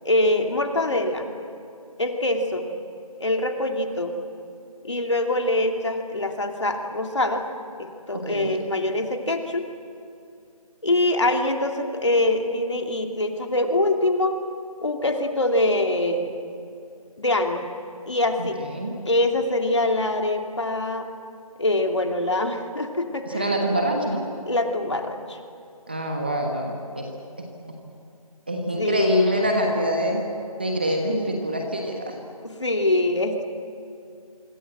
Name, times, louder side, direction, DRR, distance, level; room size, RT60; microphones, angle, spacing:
voice 1, 0.0-1.3 2.0-2.7 3.2-4.1 4.8-7.4 7.8-9.7 10.8-14.4 14.8-16.4 17.2-17.7 18.1-18.6 19.0-21.1 21.6-23.5 24.5-25.4 28.7-29.3 32.4-33.4, left 2 dB, 50° left, 3 dB, 2.7 m, -24 dB
voice 2, 8.1-8.6 18.4-19.0 23.3-24.2 25.9-27.1 27.4-27.5 28.5-30.3 30.6-32.1, equal, 15° right, 1 dB, 1.3 m, -25 dB
25.5 x 25.5 x 7.8 m, 2.6 s
figure-of-eight pair, 180°, 19 cm